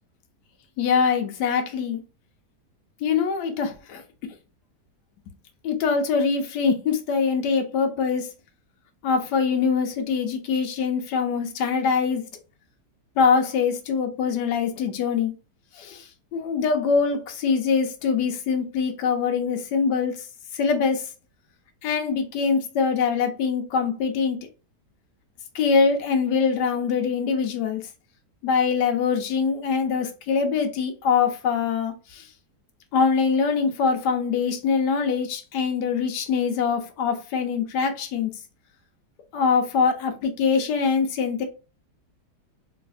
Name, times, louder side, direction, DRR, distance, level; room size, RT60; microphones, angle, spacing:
voice 1, 0.8-2.0 3.0-4.0 5.6-8.3 9.0-12.3 13.2-15.3 15.7-20.3 20.5-21.1 21.8-24.5 25.5-27.9 28.4-32.3 32.9-38.3 39.3-41.4, left 5 dB, 90° left, 1.2 m, -23 dB
3.1 x 2.7 x 2.4 m
omnidirectional pair, 1.8 m